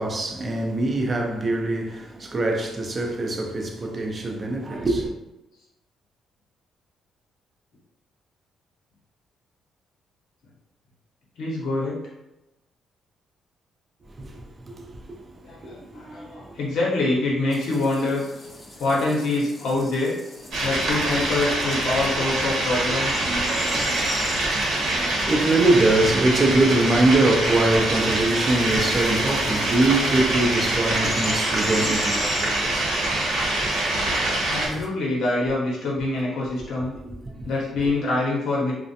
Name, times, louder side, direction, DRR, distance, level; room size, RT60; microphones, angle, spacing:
voice 1, 0.0-5.1 14.2-15.2 15.6-16.6 22.7-22.9 23.2-33.0 33.7-33.8 37.1-37.5, right 2 dB, 30° right, 0.5 m, -24 dB
voice 2, 11.4-12.0 15.4-18.3 18.8-20.1 20.6-23.3 24.1-24.3 34.5-36.9 37.4-38.7, left 2 dB, 75° left, 0.8 m, -25 dB
sound 1, 17.5-34.9, left 1 dB, 25° left, 0.5 m, -40 dB
sound 2, 20.5-34.7, right 1 dB, 75° right, 0.8 m, -24 dB
2.4 x 2.1 x 2.7 m
cardioid pair, 90°, 0 cm